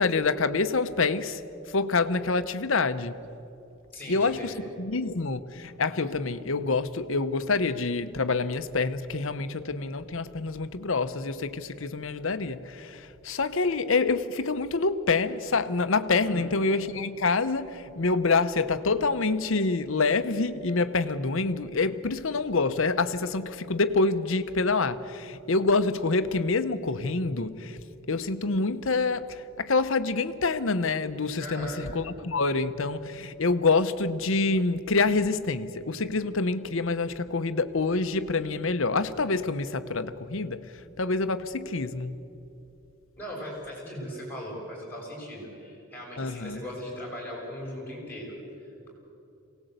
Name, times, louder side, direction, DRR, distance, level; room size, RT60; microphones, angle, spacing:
voice 1, 0.0-1.4 1.7-3.2 4.1-27.8 28.1-42.2 46.2-46.6, left 3 dB, 65° left, 0.9 m, -27 dB
voice 2, 3.9-4.5 16.2-16.5 31.4-31.8 43.2-48.9, equal, 10° left, 6.6 m, -39 dB
23.5 x 18.0 x 8.0 m
head